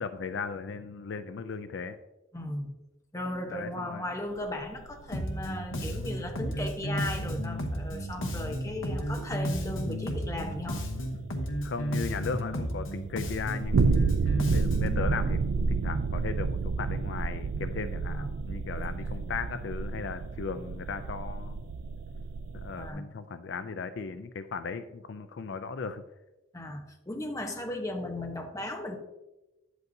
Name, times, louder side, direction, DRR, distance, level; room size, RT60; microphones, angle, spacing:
voice 1, 0.0-2.0 3.5-4.0 11.6-21.6 22.5-26.0, left 5 dB, 60° left, 10 dB, 0.4 m, -37 dB
voice 2, 2.3-2.7 3.1-10.9 18.1-18.3 18.7-19.0 22.8-23.1 26.5-29.0, left 1 dB, 15° left, 3 dB, 0.8 m, -36 dB
sound 1, 4.4-22.9, right 4 dB, 85° right, 0.4 m, -32 dB
Bass guitar, 5.1-15.0, equal, 80° left, 1.0 m, -33 dB
9.3 x 8.1 x 2.6 m, 1.0 s
head